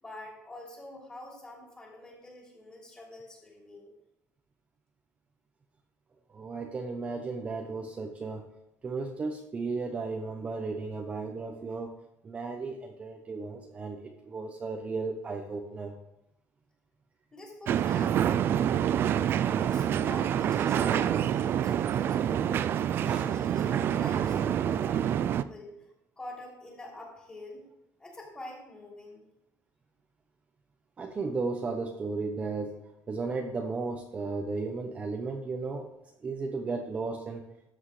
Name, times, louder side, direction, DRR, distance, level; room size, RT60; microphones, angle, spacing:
voice 1, 0.0-3.9 17.3-19.2 19.6-22.6 22.9-25.9 26.2-27.7 28.0-29.2, left 1 dB, 15° left, -3 dB, 3.2 m, -46 dB
voice 2, 6.3-8.4 8.8-11.9 12.2-15.9 23.0-23.2 31.0-32.8 33.1-35.9 36.2-37.4, right 4 dB, 20° right, 2 dB, 0.8 m, -34 dB
sound 1, 17.7-25.4, right 10 dB, 40° right, 0.3 m, -27 dB
13.5 x 7.9 x 3.3 m, 0.85 s
cardioid pair, 165°, 6 cm